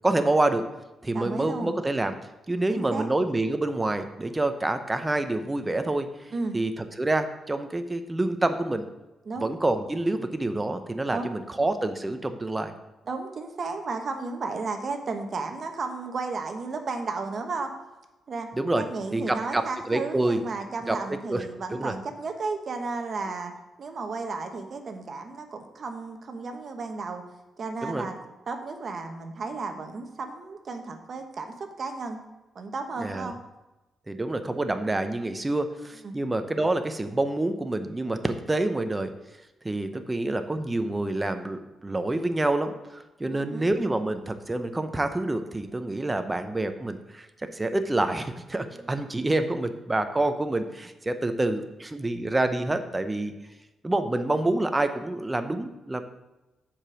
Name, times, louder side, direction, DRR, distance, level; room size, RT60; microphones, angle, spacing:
voice 1, 0.0-0.7 1.0-2.1 2.5-6.3 6.5-8.8 9.4-12.7 18.5-18.8 19.1-20.4 20.9-21.0 21.3-21.5 21.7-21.9 27.8-28.1 33.0-33.3 34.1-39.1 39.6-53.3 53.8-56.0, right 2 dB, 15° right, 8 dB, 0.7 m, -27 dB
voice 2, 1.1-1.7 2.7-3.1 6.3-6.6 9.3-9.5 11.1-11.3 13.1-17.7 18.3-18.5 18.8-23.5 23.8-27.2 27.6-28.2 28.5-32.2 32.5-33.4 36.0-36.2 39.9-40.1 43.3-43.7 48.8-48.9, right 4 dB, 50° right, 5 dB, 1.0 m, -33 dB
7.3 x 5.1 x 6.1 m, 1.0 s
cardioid pair, 105°, 0 cm